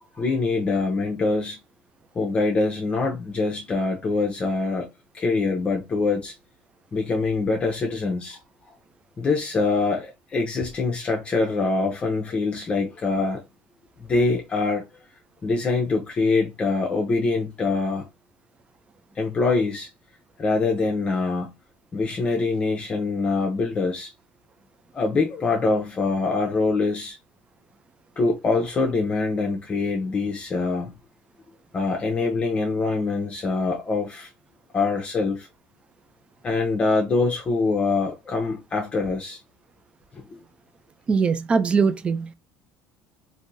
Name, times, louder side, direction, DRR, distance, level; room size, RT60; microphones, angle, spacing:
voice 1, 0.1-1.6 2.1-6.3 6.9-8.4 9.2-13.4 14.0-14.9 15.4-18.1 19.1-19.9 20.4-21.6 21.9-24.1 24.9-27.2 28.2-31.0 31.7-34.3 34.7-35.5 36.4-39.4 40.1-40.4, left 3 dB, 25° left, 0.7 m, -24 dB
voice 2, 41.1-42.3, right 5 dB, 25° right, 0.4 m, -21 dB
3.5 x 2.6 x 2.6 m
cardioid pair, 130°, 4 cm